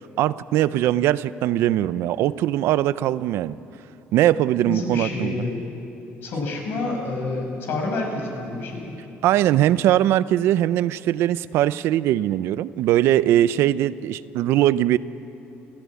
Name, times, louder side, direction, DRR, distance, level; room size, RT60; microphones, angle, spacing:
voice 1, 0.2-3.6 4.1-5.4 9.2-15.0, right 13 dB, 70° right, 16 dB, 0.5 m, -21 dB
voice 2, 4.7-5.6 6.2-8.9, left 3 dB, 55° left, 1 dB, 5.5 m, -28 dB
29.5 x 15.0 x 8.4 m, 3.0 s
cardioid pair, 165°, 4 cm